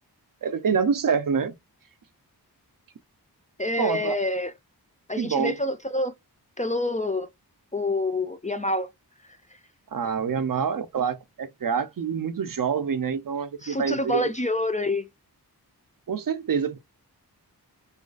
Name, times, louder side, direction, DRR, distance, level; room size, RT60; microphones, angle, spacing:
voice 1, 0.4-1.5 3.8-4.2 5.2-5.6 9.9-14.3 16.1-16.8, right 6 dB, 55° right, 0.5 m, -26 dB
voice 2, 3.6-4.5 5.1-6.1 6.6-7.3 7.7-8.9 13.6-15.1, left 2 dB, 20° left, 0.3 m, -27 dB
2.4 x 2.3 x 2.3 m
wide cardioid pair, 65°, 40 cm